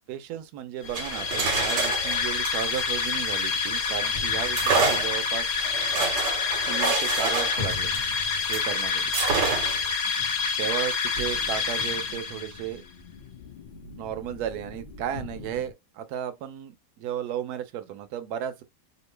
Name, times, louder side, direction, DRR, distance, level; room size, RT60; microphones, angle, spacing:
voice 1, 0.0-5.5 6.7-7.9 8.5-9.1 10.6-12.8 13.9-18.6, right 10 dB, 70° right, 1.1 m, -34 dB
sound 1, 0.8-12.7, left 5 dB, 60° left, 0.8 m, -27 dB
sound 2, 0.8-3.9 4.5-8.7 9.1-9.9, right 4 dB, 90° right, 1.4 m, -28 dB
sound 3, 2.4-15.7, left 3 dB, 35° left, 1.2 m, -43 dB
3.0 x 2.4 x 3.2 m
omnidirectional pair, 1.8 m